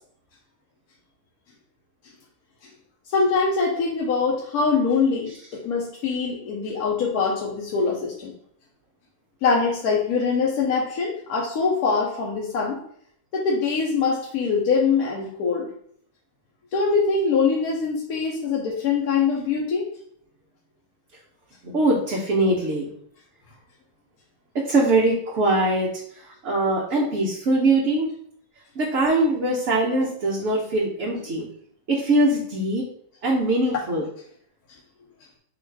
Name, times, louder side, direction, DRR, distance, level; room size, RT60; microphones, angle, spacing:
voice 1, 3.1-8.3 9.4-12.8 13.3-15.7 16.7-19.9, left 5 dB, 75° left, -3 dB, 1.1 m, -23 dB
voice 2, 21.6-22.9 24.5-26.0 26.4-28.1 28.8-31.5 31.9-32.9 33.2-34.0, right 2 dB, 60° right, -3 dB, 1.0 m, -22 dB
3.9 x 2.4 x 4.5 m, 0.65 s
omnidirectional pair, 1.6 m